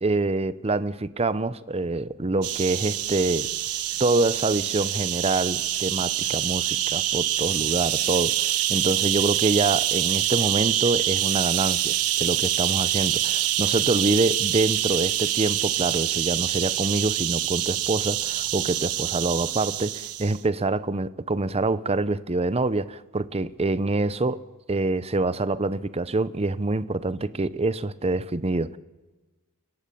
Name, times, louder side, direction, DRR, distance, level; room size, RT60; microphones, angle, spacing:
voice 1, 0.0-3.5 4.0-24.4 24.7-28.8, right 2 dB, 30° right, 0.7 m, -26 dB
sound 1, 2.4-20.4, right 12 dB, 90° right, 1.2 m, -26 dB
29.5 x 16.0 x 8.6 m
head